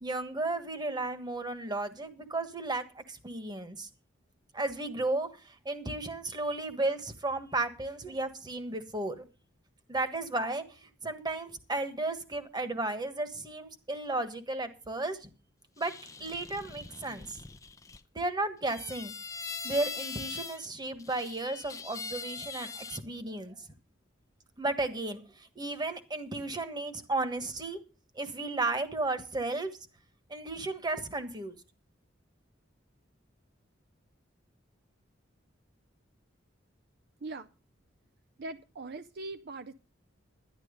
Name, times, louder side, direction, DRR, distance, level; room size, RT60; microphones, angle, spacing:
voice 1, 0.0-3.9 4.5-9.3 9.9-15.3 15.8-15.9 16.2-17.4 18.1-19.1 19.6-23.5 24.6-25.2 25.5-27.8 28.1-29.7 30.3-31.5, right 2 dB, 20° right, 1.4 m, -34 dB
sound 1, 15.8-18.0 18.7-20.7 21.0-23.0, left 5 dB, 15° left, 0.5 m, -42 dB
voice 2, 38.4-39.7, right 3 dB, 55° right, 0.5 m, -41 dB
11.5 x 10.5 x 5.1 m
head